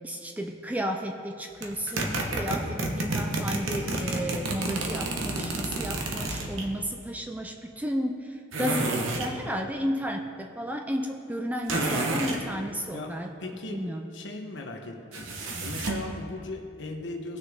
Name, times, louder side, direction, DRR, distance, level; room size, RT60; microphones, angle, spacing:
voice 1, 0.0-13.3 13.7-14.1, equal, 5° right, 3 dB, 0.4 m, -33 dB
sound 1, 1.6-6.7 8.5-9.3 11.7-12.4 15.1-16.1, right 2 dB, 65° right, 1.2 m, -30 dB
voice 2, 13.4-13.8 14.1-15.3 15.6-17.4, left 2 dB, 55° left, 2 dB, 1.1 m, -38 dB
18.5 x 6.5 x 3.7 m, 2.6 s
head